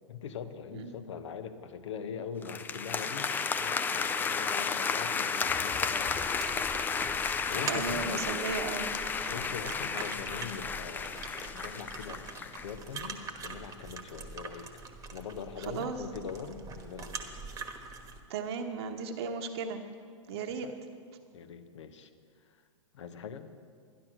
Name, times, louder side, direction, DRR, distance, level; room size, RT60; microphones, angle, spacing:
voice 1, 0.1-3.3 3.6-6.7 7.5-8.3 9.3-14.7 15.1-17.3 20.5-20.8 21.3-22.1 22.9-23.5, left 7 dB, 65° left, 10 dB, 1.0 m, -42 dB
sound 1, 2.4-12.7, left 5 dB, 10° left, 0.4 m, -32 dB
sound 2, 6.0-18.2, right 4 dB, 20° right, 1.3 m, -44 dB
voice 2, 7.7-9.0 15.7-16.0 18.3-19.8 20.3-20.7, right 5 dB, 55° right, 4 dB, 1.0 m, -35 dB
12.0 x 11.5 x 6.1 m, 2.2 s
figure-of-eight pair, 110°, 17 cm